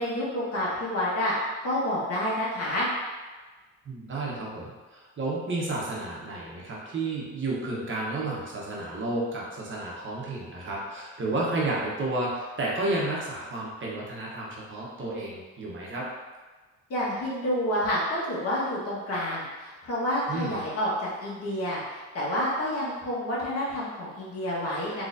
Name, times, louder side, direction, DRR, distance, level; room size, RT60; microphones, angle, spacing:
voice 1, 0.0-1.3 1.6-2.9 16.9-25.1, left 1 dB, 50° left, -7 dB, 1.4 m, -29 dB
voice 2, 3.8-16.1 20.3-20.5, right 2 dB, 40° right, -4 dB, 0.9 m, -31 dB
3.8 x 3.0 x 2.6 m, 1.3 s
cardioid pair, 90°, 30 cm